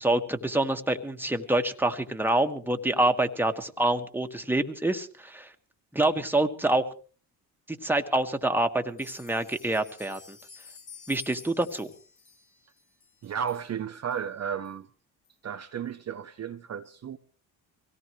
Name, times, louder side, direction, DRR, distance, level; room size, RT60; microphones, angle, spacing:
voice 1, 0.0-5.5 5.9-6.9 7.7-10.4 11.1-11.9, right 1 dB, 5° right, 1.7 m, -26 dB
sound 1, 8.9-13.6 14.1-14.2 14.6-14.7 15.2-15.3, left 5 dB, 60° left, 4.3 m, -50 dB
voice 2, 13.2-14.9 15.4-17.2, right 8 dB, 40° right, 0.8 m, -33 dB
24.0 x 17.5 x 3.2 m
supercardioid pair, 65°, 41 cm